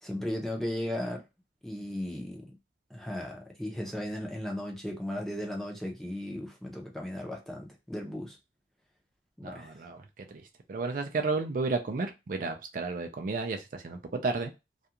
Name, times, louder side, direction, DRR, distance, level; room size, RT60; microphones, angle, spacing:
voice 1, 0.0-1.2 1.6-2.5 2.9-8.4 9.4-9.8, left 1 dB, ahead, 0.6 m, -36 dB
voice 2, 9.4-10.0 10.7-14.5, right 3 dB, 50° right, 0.4 m, -32 dB
2.4 x 2.3 x 2.8 m
head